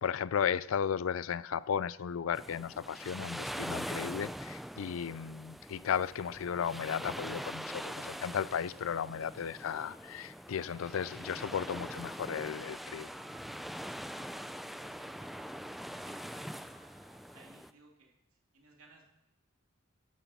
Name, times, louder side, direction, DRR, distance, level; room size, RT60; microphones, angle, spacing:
voice 1, 0.0-13.1, left 7 dB, 70° left, 0.4 m, -35 dB
sound 1, 2.3-17.7, equal, ahead, 0.3 m, -43 dB
sound 2, 6.4-17.4, right 2 dB, 25° right, 3.3 m, -61 dB
voice 2, 15.8-16.7 17.3-19.0, right 3 dB, 90° right, 2.4 m, -61 dB
13.0 x 11.5 x 4.1 m
head